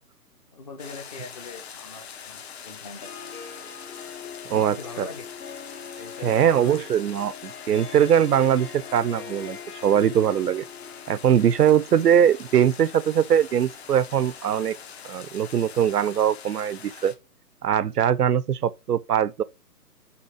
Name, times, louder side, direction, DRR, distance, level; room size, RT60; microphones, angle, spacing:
voice 1, 0.5-3.1 4.5-5.3 6.0-6.9, left 4 dB, 25° left, 0.8 m, -41 dB
sound 1, 0.8-17.1, left 7 dB, 40° left, 1.2 m, -43 dB
Harp, 2.9-14.8, left 7 dB, 65° left, 1.1 m, -43 dB
voice 2, 4.5-5.1 6.2-10.6 11.1-14.8 15.0-17.1 17.6-19.4, right 9 dB, 70° right, 0.6 m, -21 dB
5.7 x 4.0 x 5.9 m
hypercardioid pair, 150°, 49 cm